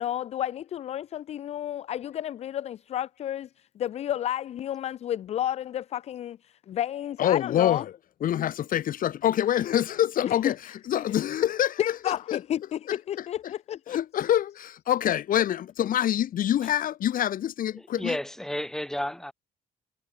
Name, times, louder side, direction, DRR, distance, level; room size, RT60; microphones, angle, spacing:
voice 1, 0.0-7.9 10.2-11.2 11.8-14.0, left 11 dB, 40° left, 0.3 m, -31 dB
voice 2, 7.2-7.9 8.2-10.6 10.9-12.4 12.9-13.5 13.9-18.2, left 11 dB, 55° left, 1.3 m, -26 dB
voice 3, 17.8-19.3, left 1 dB, 5° left, 2.1 m, -32 dB
cardioid pair, 110°, 17 cm